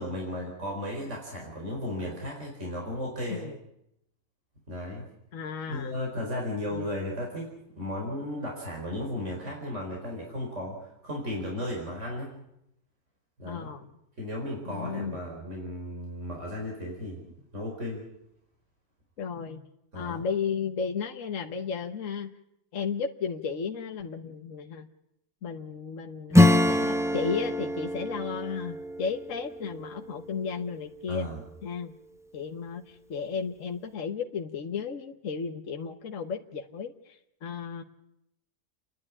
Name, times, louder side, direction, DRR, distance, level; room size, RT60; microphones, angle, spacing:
voice 1, 0.0-3.5 4.7-5.1 5.7-12.3 13.4-13.7 14.2-17.2 17.5-18.1 19.9-20.2 31.1-31.4, left 1 dB, 50° right, -1 dB, 5.0 m, -35 dB
voice 2, 5.3-5.9 6.7-6.9 13.4-13.9 14.7-15.2 19.2-19.6 19.9-22.3 22.7-24.9 25.4-31.3 31.6-31.9 32.3-37.8, left 6 dB, 60° left, 4 dB, 1.4 m, -34 dB
Acoustic guitar / Strum, 26.3-30.6, left 1 dB, 5° right, 0.5 m, -25 dB
29.5 x 11.0 x 9.9 m, 0.82 s
omnidirectional pair, 1.5 m